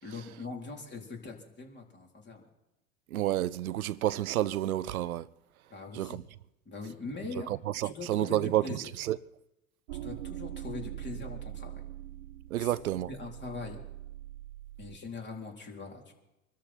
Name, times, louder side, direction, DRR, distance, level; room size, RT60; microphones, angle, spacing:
voice 1, 0.0-2.5 5.7-6.2 6.7-7.5 7.8-8.8 10.0-11.8 12.6-12.8 13.1-13.8 14.8-16.1, left 4 dB, 25° left, 3.9 m, -42 dB
voice 2, 3.1-5.3 5.9-6.2 7.5-9.2 12.5-13.1, right 13 dB, 85° right, 0.6 m, -30 dB
sound 1, 9.9-15.0, right 14 dB, 65° right, 1.2 m, -42 dB
25.0 x 13.0 x 4.5 m
hypercardioid pair, 85°, 42 cm